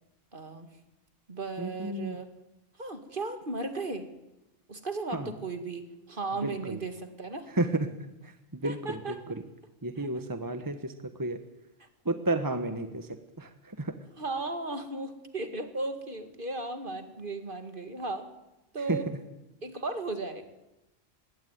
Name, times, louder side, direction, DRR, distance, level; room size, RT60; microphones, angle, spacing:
voice 1, 0.3-0.7 1.3-2.3 2.8-4.1 4.7-7.5 8.6-9.2 10.0-10.1 11.8-11.9 14.2-18.3 18.7-19.1 19.6-20.4, right 3 dB, 45° right, 8 dB, 2.3 m, -36 dB
voice 2, 1.6-2.2 5.1-5.3 6.4-6.8 7.5-7.9 8.2-9.4 9.8-10.9 11.2-11.4 12.0-14.0 18.8-19.0, right 2 dB, 15° right, 9 dB, 1.2 m, -32 dB
21.0 x 17.5 x 9.4 m, 0.93 s
omnidirectional pair, 1.3 m